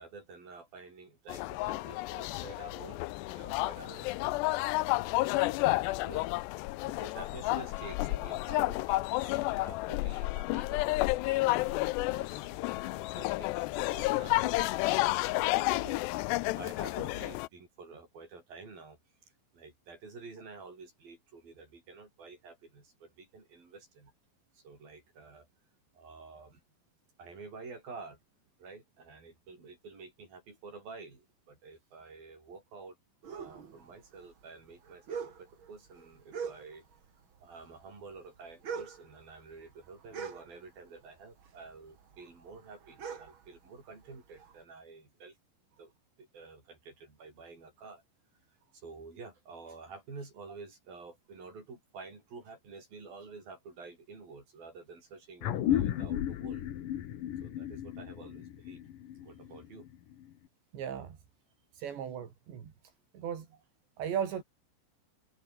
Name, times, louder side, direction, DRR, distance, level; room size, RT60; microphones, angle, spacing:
voice 1, 0.0-4.4 5.1-6.3 6.9-24.1 24.5-25.5 25.9-26.6 27.2-28.2 28.6-33.0 33.3-36.8 37.4-45.4 45.8-45.9 46.2-48.0 48.5-56.7 57.4-58.9 59.2-59.9 63.2-63.3, right 4 dB, 55° right, 9.9 m, -50 dB
sound 1, 1.3-17.5, left 20 dB, 80° left, 2.8 m, -31 dB
sound 2, 33.2-37.0 37.3-41.1 41.4-44.6, right 6 dB, 40° right, 2.1 m, -43 dB
sound 3, 55.4-60.3, left 11 dB, 60° left, 2.8 m, -34 dB
voice 2, 60.7-61.2 61.7-62.7 63.1-63.6 64.0-64.4, right 8 dB, 80° right, 5.6 m, -36 dB
omnidirectional pair, 5.0 m